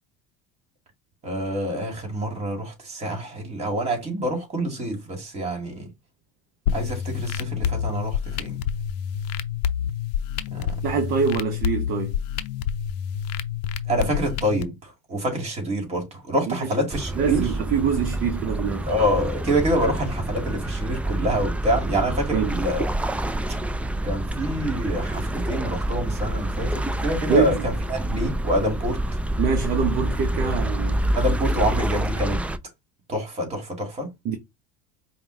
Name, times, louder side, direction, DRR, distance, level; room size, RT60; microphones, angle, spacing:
voice 1, 1.2-5.9 6.7-8.5 10.5-10.7 13.9-17.4 18.9-22.8 24.0-29.0 30.4-30.5 31.2-32.4 33.1-34.1, equal, 35° right, 2.3 m, -26 dB
sound 1, 6.7-14.6, left 8 dB, 85° left, 0.6 m, -28 dB
voice 2, 10.8-12.2 16.5-16.7 17.2-18.9 22.3-22.5 27.3-27.6 29.4-31.1 34.2-34.4, right 6 dB, 50° right, 0.9 m, -24 dB
sound 2, 16.9-32.6, right 1 dB, 5° right, 0.4 m, -27 dB
5.2 x 2.3 x 3.2 m
supercardioid pair, 115°, 20 cm